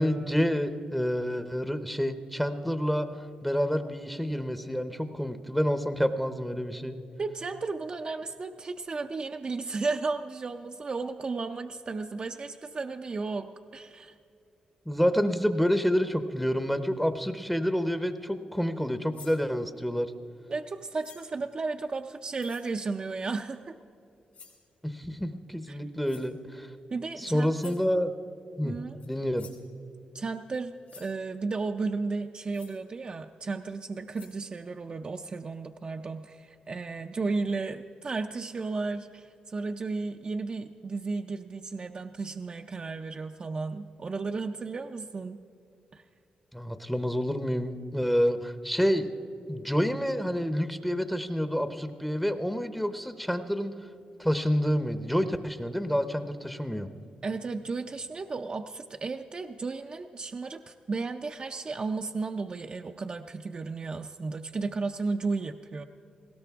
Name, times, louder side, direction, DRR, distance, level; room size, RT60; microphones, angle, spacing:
voice 1, 0.0-3.1 3.4-7.0 14.9-20.1 24.8-26.7 27.2-28.1 28.6-28.8 29.1-29.5 46.5-49.1 49.5-53.7 54.2-56.9, equal, 5° left, 9 dB, 0.7 m, -28 dB
voice 2, 7.2-14.2 20.5-23.7 25.7-25.8 26.9-27.8 28.6-29.0 30.1-45.4 45.9-46.0 57.2-65.8, right 4 dB, 40° right, 5 dB, 0.5 m, -34 dB
sound 1, 19.1-19.4 21.0-21.4 22.4-22.7 24.3-24.7 26.0-26.3 27.6-27.9 29.0-29.1 29.4-29.7 30.5-30.6 30.9-31.1 32.5-32.8 33.7-33.8 34.1-34.4, left 6 dB, 75° left, 4.0 m, -51 dB
19.5 x 17.0 x 3.5 m, 2.6 s
cardioid pair, 90°, 3 cm